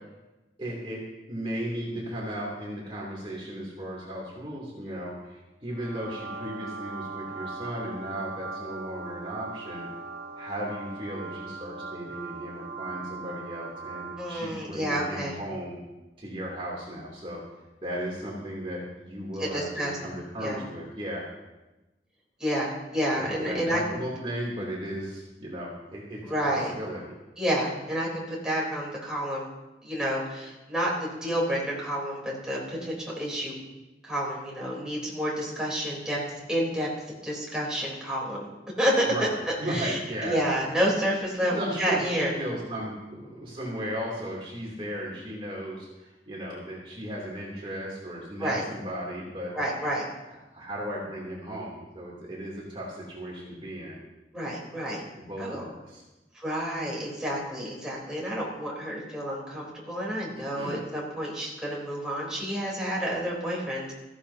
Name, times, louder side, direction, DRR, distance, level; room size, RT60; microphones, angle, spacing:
voice 1, 0.6-1.0 1.3-9.8 10.4-15.8 16.2-17.4 17.8-21.2 23.2-27.1 39.1-39.2 39.6-40.3 41.4-49.5 50.5-54.0 55.2-56.0 60.4-60.8, equal, 30° right, -4 dB, 3.0 m, -36 dB
sound 1, 5.7-14.6, right 4 dB, 60° right, 1.0 m, -40 dB
voice 2, 14.2-15.4 19.4-20.0 20.4-20.6 22.4-24.0 26.2-26.7 27.4-29.5 29.8-33.6 34.0-36.2 36.5-36.9 37.2-38.5 38.8-39.3 39.6-42.3 48.4-48.6 49.5-50.0 54.3-55.0 55.4-55.6 56.3-63.9, equal, 5° right, -5 dB, 3.6 m, -29 dB
17.0 x 15.0 x 2.8 m, 1.1 s
head